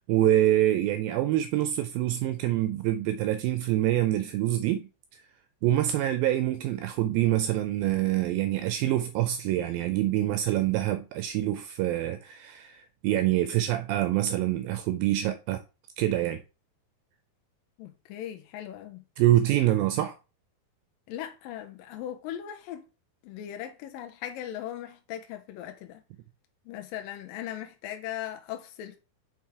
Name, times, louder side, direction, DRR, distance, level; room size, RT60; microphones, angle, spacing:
voice 1, 0.1-5.2 5.6-15.6 16.0-16.4 19.2-20.2, right 13 dB, 80° right, 2.2 m, -26 dB
voice 2, 17.8-19.0 21.1-22.9 23.2-26.0 26.7-29.0, left 11 dB, 80° left, 2.2 m, -38 dB
5.9 x 4.6 x 4.7 m
omnidirectional pair, 4.4 m